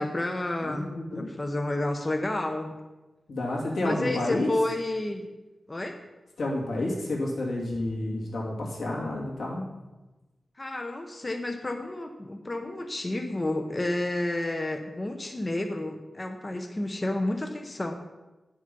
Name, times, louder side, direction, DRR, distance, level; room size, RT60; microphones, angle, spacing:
voice 1, 0.0-2.8 3.8-5.2 5.7-5.9 10.6-17.9, left 1 dB, 25° left, 5 dB, 0.8 m, -30 dB
voice 2, 0.6-1.3 3.3-4.5 6.4-9.7, left 1 dB, 85° left, -3 dB, 2.7 m, -30 dB
10.5 x 6.5 x 5.3 m, 1.1 s
wide cardioid pair, 105°, 0 cm